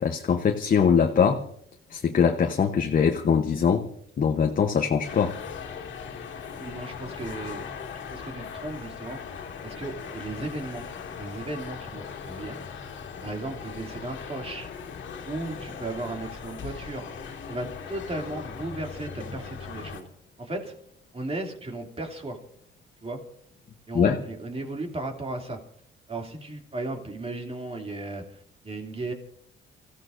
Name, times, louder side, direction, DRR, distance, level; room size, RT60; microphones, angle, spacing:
voice 1, 0.0-1.4 1.9-3.9 4.2-5.3 23.9-24.2, left 6 dB, 45° left, 4 dB, 1.0 m, -22 dB
sound 1, 5.0-20.0, left 6 dB, 70° left, 2.1 m, -39 dB
voice 2, 6.5-7.6 8.1-9.2 9.6-12.6 13.2-14.7 15.2-20.0 20.4-20.7 21.1-22.4 23.0-23.2 23.9-25.6 26.1-29.1, right 2 dB, 30° right, 2 dB, 2.8 m, -35 dB
29.0 x 15.5 x 2.6 m, 0.67 s
cardioid pair, 90°, 20 cm